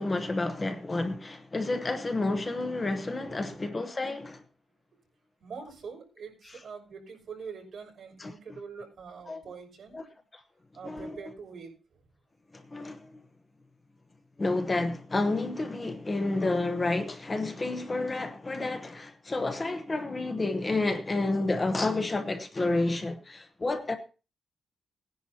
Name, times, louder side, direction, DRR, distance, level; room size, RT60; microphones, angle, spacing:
voice 1, 0.0-4.4 8.2-8.3 9.3-9.4 9.9-10.0 10.8-11.2 12.5-13.2 14.4-24.0, left 2 dB, 20° left, 0.9 m, -30 dB
voice 2, 3.2-3.6 5.4-10.0 10.7-11.7 23.6-23.7, right 5 dB, 55° right, 6.2 m, -44 dB
20.0 x 10.5 x 2.8 m
wide cardioid pair, 170°, 0 cm